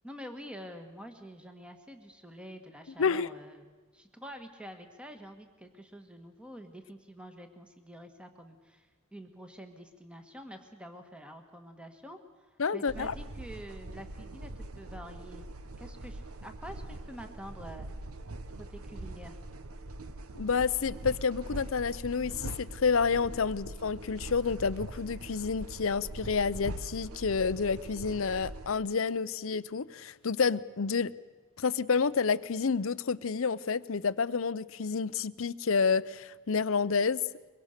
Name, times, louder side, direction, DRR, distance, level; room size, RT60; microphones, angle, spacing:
voice 1, 0.0-3.7 3.9-12.2 12.5-15.4 15.8-17.9 18.6-19.4, equal, 5° right, 6 dB, 1.5 m, -47 dB
voice 2, 12.6-13.1 20.3-31.1 31.6-37.2, left 5 dB, 65° left, 16 dB, 0.6 m, -29 dB
sound 1, 12.9-28.7, right 1 dB, 80° right, 1.0 m, -42 dB
23.5 x 23.0 x 6.6 m, 1.4 s
head